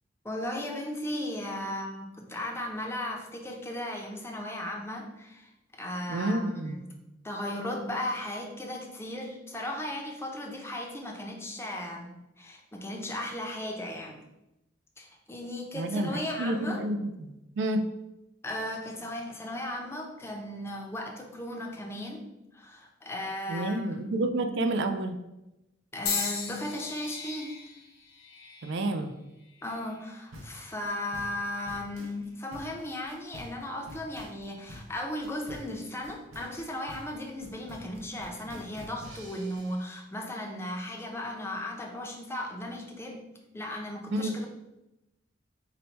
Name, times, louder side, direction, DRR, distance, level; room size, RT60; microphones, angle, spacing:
voice 1, 0.2-6.8 7.2-14.2 15.0-16.8 18.4-22.2 22.5-24.0 25.9-27.5 29.6-43.3 43.5-44.5, left 1 dB, 15° left, 0 dB, 0.5 m, -36 dB
voice 2, 6.1-6.8 15.7-17.9 23.5-25.2 28.6-29.1 44.1-44.3, right 1 dB, 60° right, 7 dB, 0.4 m, -29 dB
sound 1, 26.1-30.2 30.9-31.3 32.3-32.5, left 5 dB, 85° left, 0.9 m, -37 dB
sound 2, 30.3-39.8, equal, 90° right, 0.8 m, -47 dB
4.0 x 2.2 x 4.4 m, 0.94 s
head